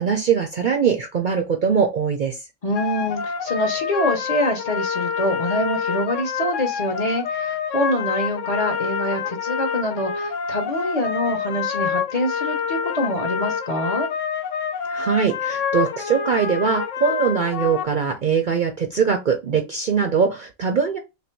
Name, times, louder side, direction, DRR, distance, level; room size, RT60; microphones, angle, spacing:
voice 1, 0.0-2.4 14.9-21.0, right 6 dB, 50° right, 3 dB, 0.6 m, -21 dB
voice 2, 2.6-14.1, equal, 35° left, 3 dB, 0.7 m, -25 dB
sound 1, 2.7-17.8, left 7 dB, 80° left, 1.0 m, -27 dB
3.3 x 2.6 x 4.4 m, 0.25 s
omnidirectional pair, 1.3 m